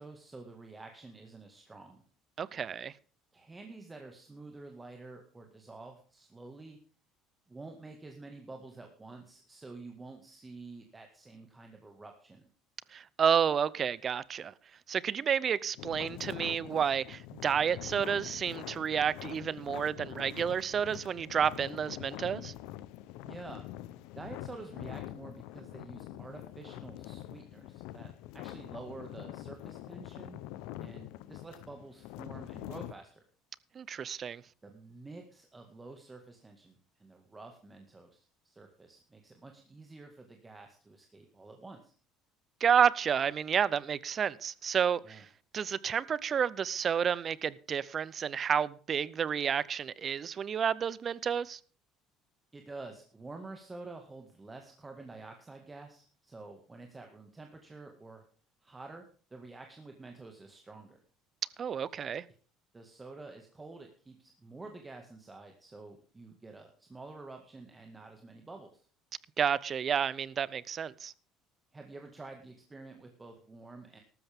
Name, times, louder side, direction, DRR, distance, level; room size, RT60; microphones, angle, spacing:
voice 1, 0.0-2.0 3.3-6.8 7.5-12.4 23.2-23.6 24.1-30.4 30.8-33.2 34.6-41.9 45.0-45.2 52.5-58.2 58.6-59.0 59.3-61.0 62.7-68.9 71.7-74.0, right 3 dB, 15° right, 1.9 m, -49 dB
voice 2, 2.4-2.9 12.9-14.5 14.9-22.5 33.8-34.4 42.6-45.3 45.5-51.6 61.6-62.2 69.4-71.1, right 7 dB, 40° right, 0.6 m, -30 dB
sound 1, 15.8-32.9, left 14 dB, 80° left, 0.8 m, -45 dB
14.0 x 13.0 x 3.6 m
supercardioid pair, 105°, 0 cm